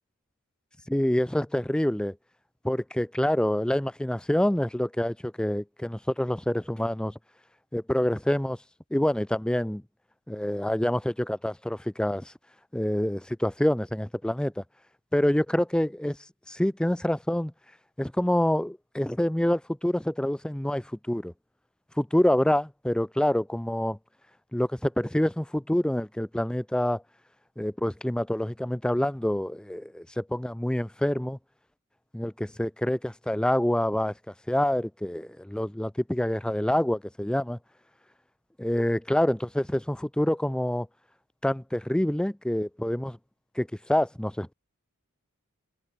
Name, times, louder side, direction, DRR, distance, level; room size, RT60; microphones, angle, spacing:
voice 1, 0.9-2.2 2.6-7.1 7.7-8.6 8.9-9.8 10.3-12.3 12.7-14.6 15.1-16.2 16.5-17.5 18.0-21.3 22.0-24.0 24.5-27.0 27.6-31.4 32.1-37.6 38.6-40.9 41.4-43.2 43.6-44.5, left 1 dB, 5° left, 0.3 m, -27 dB
head